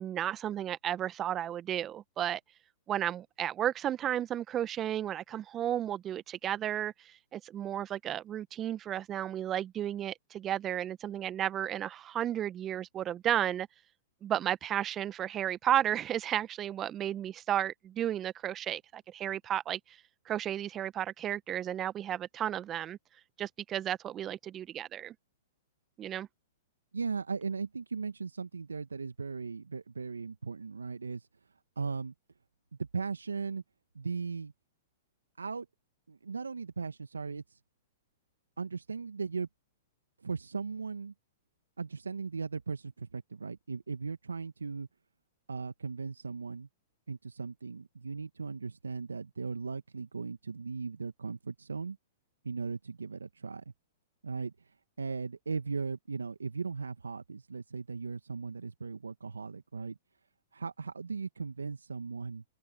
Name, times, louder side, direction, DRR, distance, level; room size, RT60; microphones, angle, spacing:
voice 1, 0.0-2.4 2.9-13.7 14.2-20.0 20.2-23.0 23.4-25.1 26.0-26.3, right 11 dB, 25° right, 1.2 m, -33 dB
voice 2, 26.9-31.3 31.7-32.1 32.8-33.6 33.9-34.5 35.4-35.7 36.1-37.6 38.6-39.5 40.2-41.1 41.8-44.9 45.5-46.7 47.1-52.0 52.4-53.6 54.2-54.5 55.0-60.0 60.5-62.4, right 4 dB, 85° right, 1.5 m, -37 dB
figure-of-eight pair, 110°, 0 cm